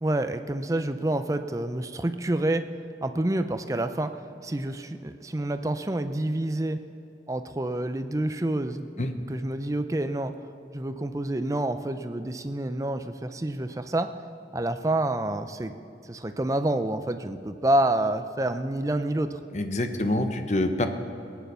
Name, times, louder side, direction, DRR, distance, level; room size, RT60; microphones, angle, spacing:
voice 1, 0.0-2.7 3.0-4.1 4.4-6.8 7.3-10.3 10.7-14.1 14.5-15.7 16.0-19.4, right 1 dB, 20° right, 9 dB, 0.5 m, -28 dB
voice 2, 19.5-20.9, left 1 dB, 40° left, 7 dB, 0.9 m, -26 dB
18.0 x 9.3 x 6.8 m, 2.7 s
head